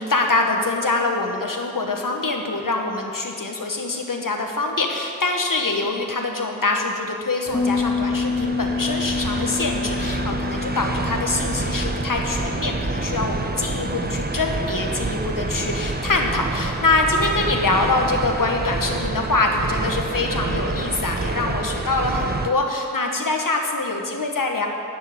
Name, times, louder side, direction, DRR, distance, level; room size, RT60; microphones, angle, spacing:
voice 1, 0.0-24.7, left 2 dB, 70° left, 2 dB, 1.3 m, -24 dB
Bass guitar, 7.5-16.9, left 4 dB, 15° left, 0.4 m, -30 dB
Omnia flare noise close perspective, 7.5-22.5, right 2 dB, 30° right, 0.7 m, -28 dB
10.0 x 7.2 x 7.7 m, 2.5 s
wide cardioid pair, 50°, 34 cm